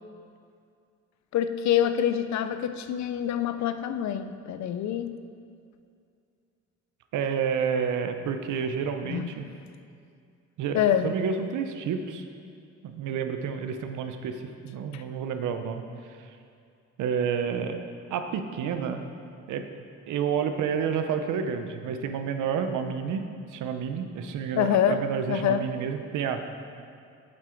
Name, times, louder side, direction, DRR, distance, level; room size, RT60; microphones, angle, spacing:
voice 1, 1.3-5.1 9.0-9.3 10.7-11.1 14.9-15.0 24.5-25.0 25.3-25.7, left 9 dB, 65° left, 10 dB, 0.6 m, -26 dB
voice 2, 7.1-9.4 10.6-12.2 12.8-16.3 17.0-17.8 18.1-19.1 19.5-19.7 20.1-26.4, right 7 dB, 80° right, 7 dB, 0.7 m, -30 dB
7.7 x 7.5 x 4.5 m, 2.4 s
cardioid pair, 90°, 30 cm